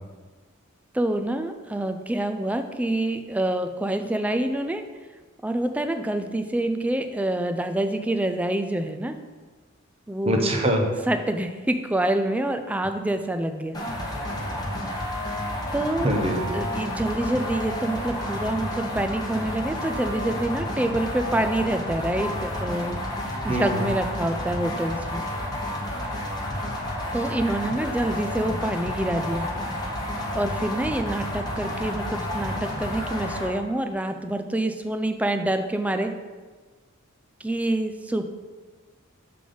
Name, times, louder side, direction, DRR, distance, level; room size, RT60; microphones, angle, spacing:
voice 1, 0.9-4.8 5.4-9.2 10.1-10.5 11.1-13.8 15.7-16.1 16.5-23.0 23.4-25.2 27.1-29.5 30.4-36.1 37.4-38.2, right 1 dB, 5° right, 7 dB, 0.3 m, -26 dB
voice 2, 10.2-10.8 16.0-16.5 23.5-23.8, right 1 dB, 30° right, 2 dB, 0.8 m, -23 dB
sound 1, 13.7-33.5, left 1 dB, 20° left, 1.0 m, -30 dB
6.7 x 3.8 x 5.0 m, 1.4 s
head